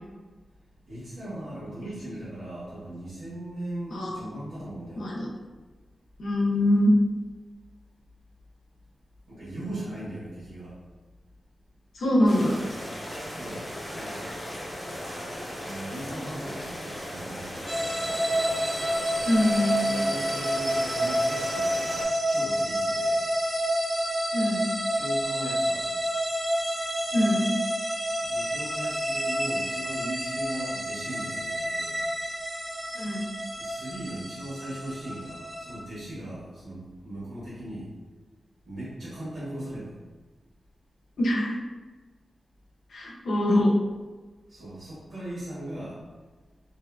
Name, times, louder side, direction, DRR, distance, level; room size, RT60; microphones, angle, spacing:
voice 1, 0.9-5.2 9.3-10.7 13.2-13.7 13.9-14.3 15.6-18.2 19.8-21.9 22.3-23.2 24.9-25.9 28.2-32.0 33.6-37.9 38.6-39.9 44.5-46.0, right 1 dB, 75° right, -10 dB, 1.2 m, -38 dB
voice 2, 5.0-5.3 6.2-6.9 11.9-12.5 19.2-19.8 24.3-24.7 27.1-27.5 32.9-33.2 41.2-41.5 42.9-43.7, left 1 dB, 80° left, -3 dB, 0.5 m, -23 dB
sound 1, 12.2-22.0, equal, 20° left, 0.7 m, -37 dB
sound 2, 17.7-35.8, equal, 20° right, 0.5 m, -29 dB
2.7 x 2.3 x 2.3 m, 1.3 s
wide cardioid pair, 130°, 0 cm